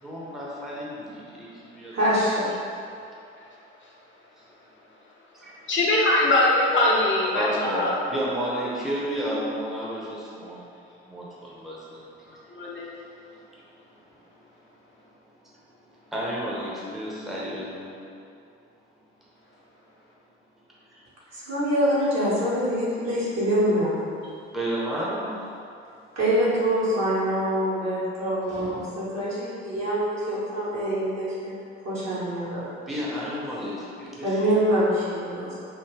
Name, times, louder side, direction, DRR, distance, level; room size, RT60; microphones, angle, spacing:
voice 1, 0.0-2.2 3.4-3.5 4.4-4.5 5.4-5.5 7.3-10.7 11.0-12.5 13.1-13.8 14.2-14.3 15.0-15.1 15.4-15.5 15.8-18.0 24.5-25.3 32.9-34.5 35.4-35.5, equal, ahead, -6 dB, 0.8 m, -32 dB
voice 2, 1.9-2.5 21.3-24.0 26.1-32.6 34.2-35.5, equal, 50° right, -9 dB, 1.4 m, -25 dB
voice 3, 5.7-8.0 12.5-12.9, left 2 dB, 35° left, -4 dB, 0.7 m, -22 dB
3.5 x 2.6 x 3.3 m, 2.5 s
figure-of-eight pair, 45°, 33 cm